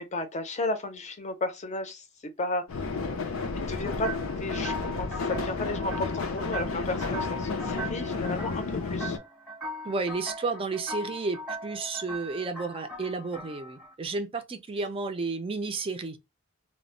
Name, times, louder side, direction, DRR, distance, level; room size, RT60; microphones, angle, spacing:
voice 1, 0.0-2.0 2.4-2.9 3.5-4.1 4.4-9.2, left 2 dB, 35° left, 0.6 m, -33 dB
sound 1, 2.7-9.2, left 4 dB, 85° left, 0.5 m, -32 dB
sound 2, 4.0-13.9, equal, 5° right, 0.8 m, -39 dB
voice 2, 9.8-16.2, right 3 dB, 25° right, 0.4 m, -32 dB
2.1 x 2.0 x 3.7 m
head